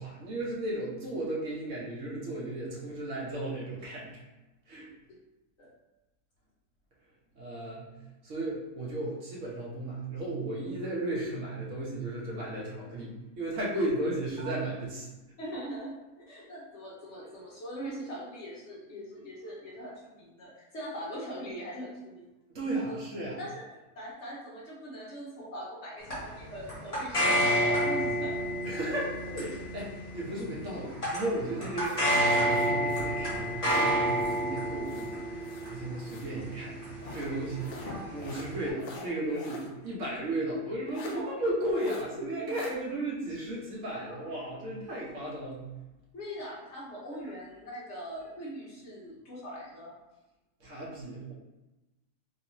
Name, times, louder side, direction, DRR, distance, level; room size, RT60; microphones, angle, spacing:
voice 1, 0.0-4.1 4.7-4.9 7.4-7.9 8.2-15.1 22.5-23.4 28.6-32.0 32.3-36.8 37.1-37.7 38.1-45.6 50.6-51.3, right 1 dB, 55° right, -5 dB, 1.1 m, -35 dB
voice 2, 15.4-15.9 16.3-22.3 22.9-23.0 23.4-23.7 23.9-28.4 35.9-36.1 41.1-41.3 42.4-42.5 44.0-44.3 46.1-49.9, equal, 60° left, -5 dB, 0.8 m, -41 dB
sound 1, 26.1-38.7, equal, 25° left, 1.2 m, -30 dB
sound 2, 31.8-34.5 34.8-36.4 37.0-39.7 40.1-40.2 40.9-41.2 41.8-42.1 42.5-42.7, left 3 dB, 75° left, 1.1 m, -47 dB
3.0 x 2.9 x 2.9 m, 1.0 s
omnidirectional pair, 1.8 m